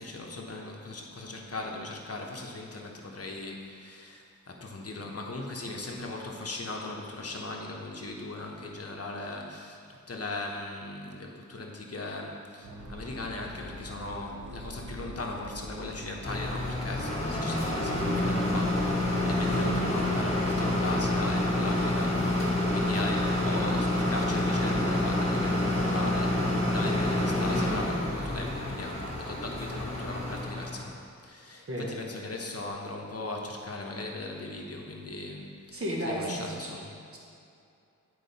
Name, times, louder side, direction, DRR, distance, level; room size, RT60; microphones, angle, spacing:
voice 1, 0.0-9.8 10.1-37.0, left 2 dB, 50° left, 0 dB, 1.0 m, -38 dB
sound 1, 12.6-19.8, equal, 65° right, 1.2 m, -44 dB
sound 2, 16.2-30.9, left 1 dB, 20° left, 1.7 m, -28 dB
voice 2, 35.7-36.8 37.1-37.2, equal, 45° right, -3 dB, 1.2 m, -33 dB
9.1 x 4.8 x 4.1 m, 2.5 s
wide cardioid pair, 90°, 32 cm